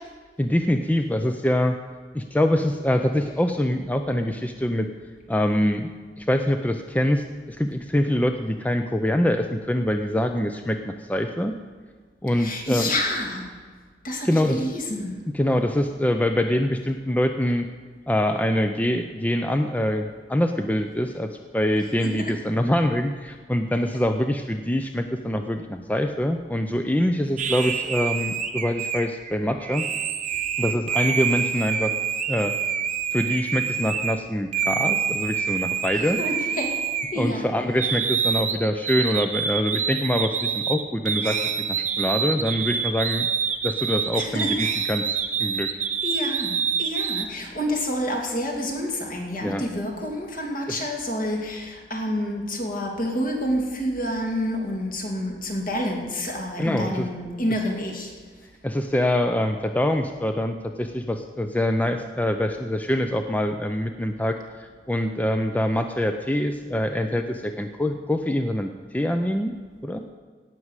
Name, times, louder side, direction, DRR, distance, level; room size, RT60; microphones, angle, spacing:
voice 1, 0.4-1.8 2.1-4.9 5.3-5.9 6.2-11.5 12.2-12.9 14.2-14.6 15.3-17.7 18.1-29.8 30.6-31.9 32.3-32.5 33.1-36.2 37.2-43.3 43.6-45.1 45.4-45.7 49.4-49.6 50.7-50.8 56.6-57.1 58.6-69.5 69.8-70.0, left 1 dB, 10° left, 6 dB, 0.5 m, -24 dB
voice 2, 12.4-13.4 14.0-15.1 36.0-36.7 37.1-37.5 44.2-44.5 46.0-46.5 46.8-51.6 51.9-58.1, left 1 dB, 50° left, 1 dB, 2.7 m, -28 dB
sound 1, 27.4-34.2 34.5-37.4 37.8-47.3, right 7 dB, 45° right, 0.9 m, -26 dB
17.0 x 6.1 x 8.1 m, 1.5 s
head